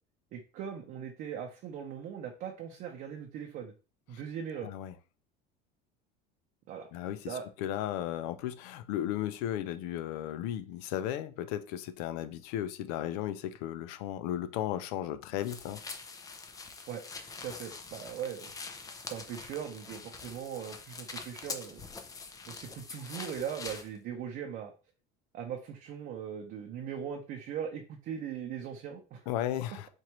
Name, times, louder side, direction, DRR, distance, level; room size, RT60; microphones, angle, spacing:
voice 1, 0.3-3.7 4.1-4.7 6.7-6.9 7.3-7.4 16.9-17.0 17.4-18.5 19.1-21.8 22.5-24.7 25.3-29.3, right 8 dB, 50° right, 0.7 m, -39 dB
voice 2, 4.6-4.9 6.9-15.8 29.3-29.9, left 11 dB, 85° left, 0.5 m, -35 dB
sound 1, 15.4-23.9, left 4 dB, 15° left, 0.5 m, -44 dB
4.4 x 2.5 x 3.0 m
cardioid pair, 140°, 20 cm